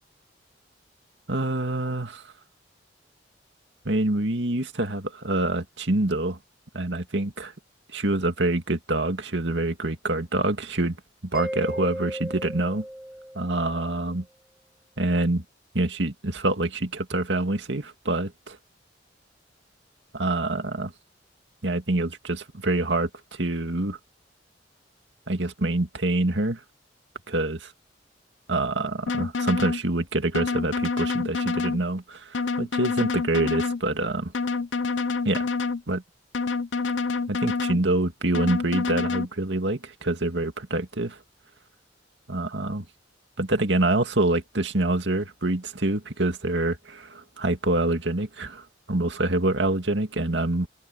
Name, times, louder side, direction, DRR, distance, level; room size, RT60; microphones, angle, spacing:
voice 1, 1.3-2.2 3.8-6.4 6.7-7.5 7.9-11.0 11.3-12.8 13.3-14.2 15.0-15.4 15.7-18.6 20.1-20.9 21.6-24.0 25.3-26.6 27.3-27.7 28.5-34.3 35.2-35.5 35.9-36.0 37.3-41.2 42.3-42.8 43.4-50.7, right 2 dB, 75° right, 2.3 m, -26 dB
Mallet percussion, 11.3-13.9, equal, 5° right, 0.5 m, -35 dB
sound 1, 29.1-29.8 30.3-31.8 32.3-33.8 34.3-35.8 36.3-37.8 38.3-39.3, left 4 dB, 85° left, 0.7 m, -27 dB
head